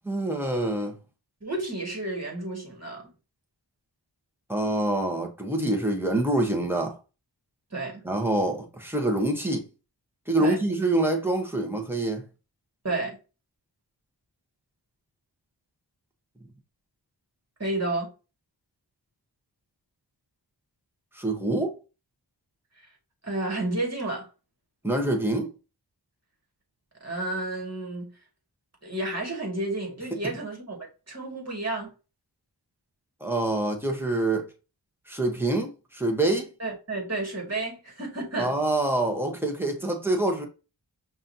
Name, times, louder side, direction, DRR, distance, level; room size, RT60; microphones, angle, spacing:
voice 1, 0.0-0.9 4.5-7.0 8.0-9.7 10.3-12.2 21.1-21.8 24.8-25.5 33.2-34.5 35.1-36.5 38.4-40.5, right 2 dB, 5° right, 1.2 m, -26 dB
voice 2, 1.4-3.1 7.7-8.0 10.4-10.6 12.8-13.2 17.6-18.1 22.8-22.9 23.2-24.3 27.0-28.1 28.8-31.9 36.6-38.5, right 2 dB, 35° right, 2.1 m, -31 dB
5.4 x 2.7 x 2.8 m
wide cardioid pair, 45°, 45 cm